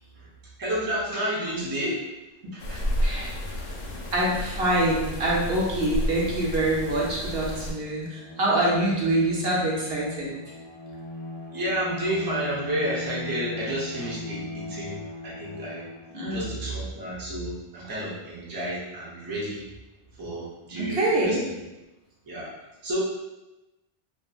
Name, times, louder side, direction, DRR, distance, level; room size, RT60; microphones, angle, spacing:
voice 1, 0.6-2.0 2.5-2.8 11.5-15.0 15.2-15.9 16.3-19.7 20.2-21.5 22.3-22.5 22.8-23.0, right 1 dB, 25° right, -6 dB, 0.6 m, -31 dB
sound 1, 2.6-7.7, equal, 80° left, 0.8 m, -31 dB
voice 2, 4.1-10.3 16.1-16.5 20.8-21.4, right 1 dB, 70° right, -5 dB, 1.0 m, -25 dB
Bowed string instrument, 8.1-16.6, left 2 dB, 40° left, 0.4 m, -39 dB
2.7 x 2.5 x 2.3 m, 1.0 s
omnidirectional pair, 1.1 m